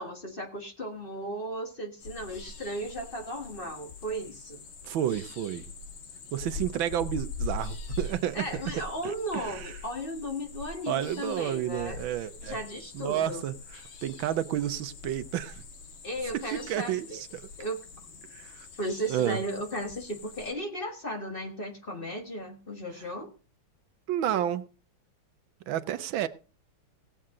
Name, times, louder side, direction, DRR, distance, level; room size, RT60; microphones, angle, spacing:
voice 1, 0.0-4.6 8.3-12.0 12.4-13.4 16.0-17.2 17.6-17.8 18.8-23.3, equal, 30° left, 1.6 m, -35 dB
sound 1, 2.0-20.5, left 4 dB, 80° left, 2.1 m, -43 dB
voice 2, 4.8-5.7 6.3-8.6 9.0-9.7 10.9-12.6 12.9-13.5 14.0-15.6 16.5-17.5 18.3-18.7 19.1-19.4 24.1-24.6 25.7-26.3, right 11 dB, 80° right, 1.5 m, -31 dB
18.0 x 7.7 x 3.7 m
omnidirectional pair, 2.1 m